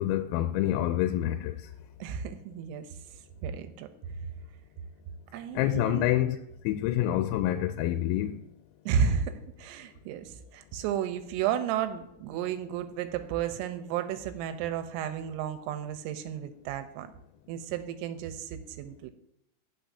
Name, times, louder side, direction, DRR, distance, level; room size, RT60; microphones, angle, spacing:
voice 1, 0.0-1.6 5.6-6.4 6.7-8.4, left 13 dB, 90° left, 3.3 m, -27 dB
voice 2, 2.0-2.9 3.4-3.9 5.3-6.1 8.9-17.1 17.5-19.1, right 8 dB, 85° right, 3.3 m, -32 dB
18.5 x 6.5 x 2.7 m
omnidirectional pair, 5.9 m